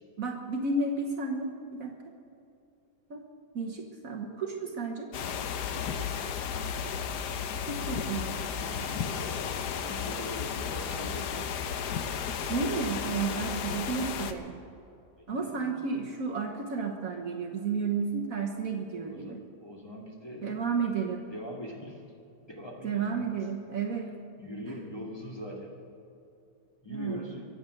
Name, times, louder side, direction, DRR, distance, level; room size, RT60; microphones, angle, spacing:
voice 1, 0.2-1.9 3.1-3.2 3.5-5.1 7.7-8.3 12.5-14.6 15.3-19.4 20.4-21.2 22.8-24.1 24.7-24.8 26.9-27.3, right 4 dB, 55° right, 1 dB, 1.5 m, -32 dB
sound 1, 5.1-14.3, left 7 dB, 70° left, 1.4 m, -33 dB
voice 2, 8.6-11.5 15.2-15.7 19.0-20.5 21.3-22.0 22.4-23.4 24.4-25.7 26.8-27.5, equal, 15° left, -2 dB, 2.3 m, -42 dB
23.5 x 8.5 x 6.5 m, 2.7 s
omnidirectional pair, 1.8 m